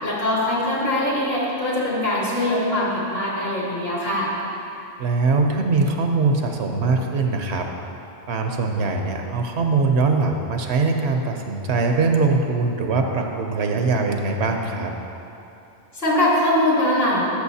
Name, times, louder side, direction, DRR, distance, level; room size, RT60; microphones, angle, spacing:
voice 1, 0.0-4.3 15.9-17.2, left 1 dB, 65° left, -6 dB, 2.1 m, -22 dB
voice 2, 5.0-7.7 8.3-14.9, right 3 dB, 85° right, 3 dB, 1.0 m, -22 dB
13.0 x 6.5 x 2.8 m, 2.8 s
omnidirectional pair, 1.1 m